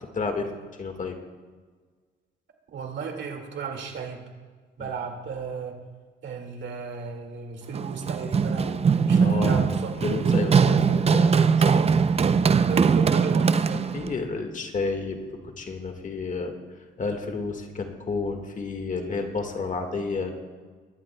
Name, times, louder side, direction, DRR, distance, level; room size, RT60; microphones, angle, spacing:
voice 1, 0.1-0.5 0.8-1.2 4.8-4.9 9.1-9.6 10.0-11.9 13.7-15.2 15.4-16.5 17.0-20.4, left 4 dB, 40° left, 5 dB, 1.7 m, -31 dB
voice 2, 2.7-4.2 4.8-5.8 6.2-9.9 12.7-13.8, right 5 dB, 70° right, 3 dB, 2.1 m, -34 dB
Run, 7.7-14.1, right 5 dB, 30° right, 0.5 m, -21 dB
23.0 x 11.5 x 2.3 m, 1.5 s
cardioid pair, 90°, 20 cm